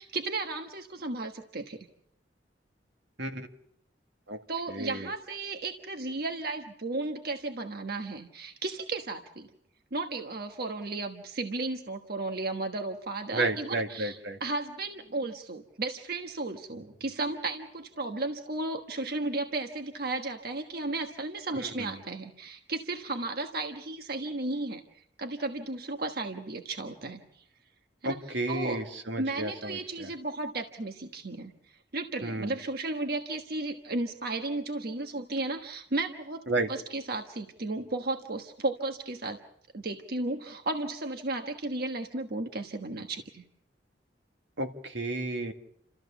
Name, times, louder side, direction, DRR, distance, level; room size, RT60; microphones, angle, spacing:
voice 1, 0.0-1.9 4.5-9.5 9.9-27.4 28.0-28.2 28.5-28.8 29.2-31.5 31.9-36.4 36.7-39.4 39.7-43.4, right 2 dB, 60° right, 5 dB, 1.3 m, -34 dB
voice 2, 4.7-5.1 13.3-14.4 21.6-21.9 28.0-30.1 32.2-32.6 36.5-36.7 44.6-45.5, right 2 dB, 85° right, 5 dB, 2.1 m, -32 dB
29.5 x 14.0 x 7.1 m, 0.74 s
head